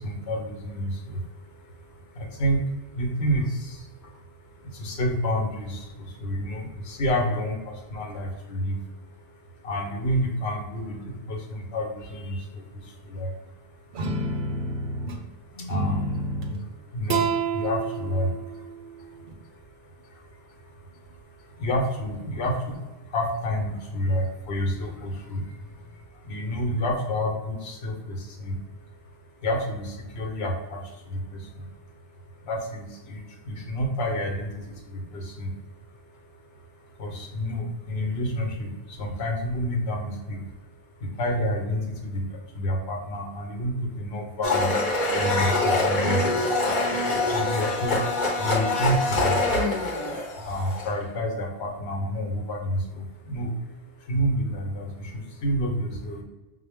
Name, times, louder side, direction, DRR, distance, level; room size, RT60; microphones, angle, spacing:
voice 1, 0.0-56.2, equal, 80° left, 1 dB, 1.1 m, -30 dB
sound 1, 13.9-15.2 15.7-16.6 17.1-19.3, right 3 dB, 60° right, 0.6 m, -29 dB
Domestic sounds home sounds, 44.4-51.0, left 2 dB, 50° left, 1.0 m, -24 dB
5.6 x 2.1 x 3.4 m, 1.1 s
omnidirectional pair, 1.1 m